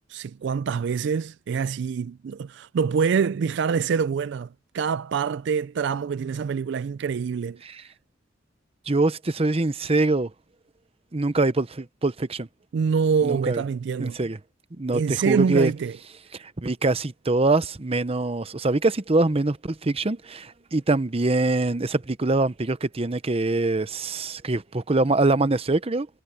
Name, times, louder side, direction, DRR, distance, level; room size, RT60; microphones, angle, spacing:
voice 1, 0.0-4.5 4.7-7.6 12.7-14.2 14.9-15.9, right 6 dB, 65° right, 0.3 m, -25 dB
voice 2, 8.9-10.3 11.1-12.5 13.2-13.6 14.0-14.4 14.8-15.7 16.4-26.1, right 2 dB, 30° right, 0.8 m, -24 dB
head